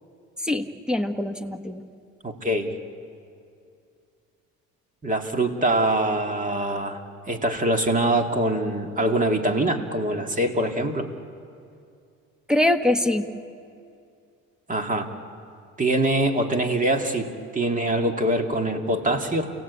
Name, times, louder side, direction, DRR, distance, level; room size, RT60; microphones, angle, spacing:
voice 1, 0.4-1.8 12.5-13.3, left 1 dB, ahead, 8 dB, 1.4 m, -23 dB
voice 2, 2.2-2.7 5.0-7.0 7.3-11.1 14.7-15.1 15.8-19.5, right 1 dB, 25° right, 4 dB, 2.3 m, -24 dB
29.0 x 17.5 x 8.2 m, 2.4 s
supercardioid pair, 85°, 33 cm